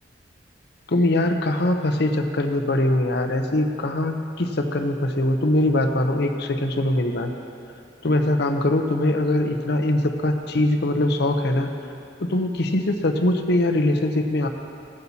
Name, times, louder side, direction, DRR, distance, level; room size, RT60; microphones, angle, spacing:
voice 1, 0.9-7.3 8.0-11.7 12.2-14.5, left 1 dB, 60° left, 5 dB, 0.7 m, -22 dB
16.5 x 8.2 x 2.8 m, 2.5 s
head